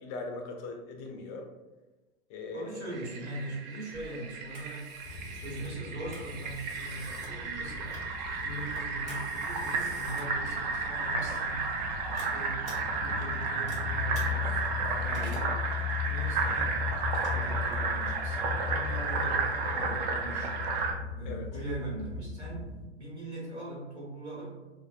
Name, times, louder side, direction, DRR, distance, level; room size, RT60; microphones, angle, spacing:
voice 1, 0.0-1.5 2.3-3.0 17.9-18.2 21.2-21.6, left 3 dB, 30° left, 2 dB, 0.4 m, -40 dB
voice 2, 2.5-4.9 5.3-8.1 8.4-11.7 12.1-12.7 13.0-14.6 14.9-15.6 16.0-16.8 17.3-20.5 21.1-24.6, right 2 dB, 80° right, -5 dB, 1.3 m, -41 dB
Fill (with liquid), 2.9-20.9, right 4 dB, 40° right, 0.4 m, -33 dB
Telephone, 3.9-18.2, right 1 dB, 60° right, 1.2 m, -50 dB
sound 1, 5.0-22.9, left 7 dB, 80° left, 0.6 m, -37 dB
2.6 x 2.1 x 2.3 m, 1.1 s
hypercardioid pair, 110°, 33 cm